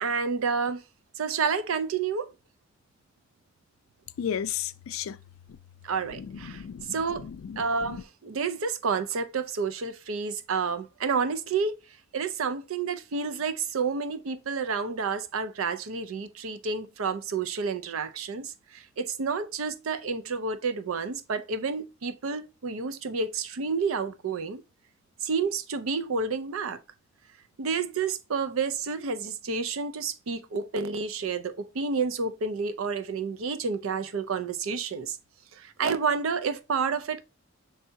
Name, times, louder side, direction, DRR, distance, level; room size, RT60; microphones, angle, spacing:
voice 1, 0.0-0.8 1.2-2.3 5.8-6.6 6.9-7.3 7.6-11.7 12.1-24.6 25.2-26.8 27.6-35.2 35.5-37.2, right 5 dB, 90° right, 0.5 m, -30 dB
voice 2, 4.2-5.2 6.1-8.0, left 8 dB, 85° left, 0.4 m, -35 dB
5.5 x 3.3 x 2.7 m
head